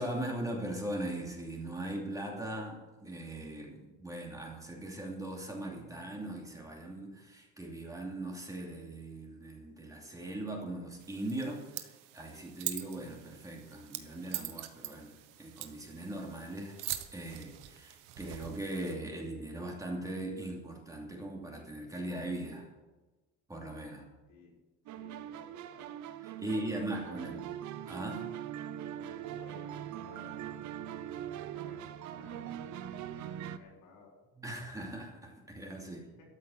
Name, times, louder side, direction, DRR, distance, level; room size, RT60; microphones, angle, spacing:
voice 1, 0.0-16.8 17.1-22.7 23.5-24.1 26.2-27.4 27.9-28.3 34.4-36.0, right 1 dB, 10° right, -1 dB, 2.7 m, -40 dB
sound 1, 11.0-19.0, right 14 dB, 85° right, 1.2 m, -44 dB
voice 2, 24.9-25.9 26.4-27.5 29.0-30.4 31.1-32.7 33.2-34.1 35.8-36.2, left 3 dB, 85° left, -2 dB, 5.6 m, -56 dB
sound 2, 24.9-33.6, right 10 dB, 65° right, 0.9 m, -42 dB
13.0 x 8.6 x 7.9 m, 1.2 s
cardioid pair, 155°, 32 cm